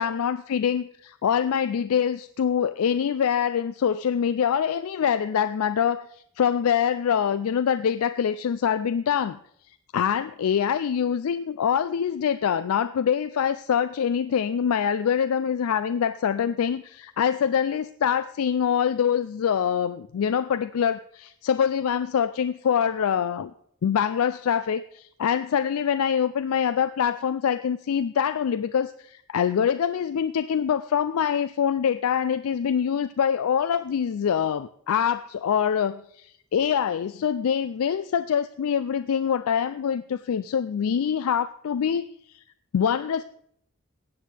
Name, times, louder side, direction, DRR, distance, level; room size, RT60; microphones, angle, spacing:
voice 1, 0.0-6.1 6.4-9.4 9.9-23.5 23.8-42.1 42.3-42.4 42.7-43.2, left 8 dB, 80° left, 12 dB, 0.4 m, -24 dB
15.5 x 9.3 x 3.4 m, 0.68 s
head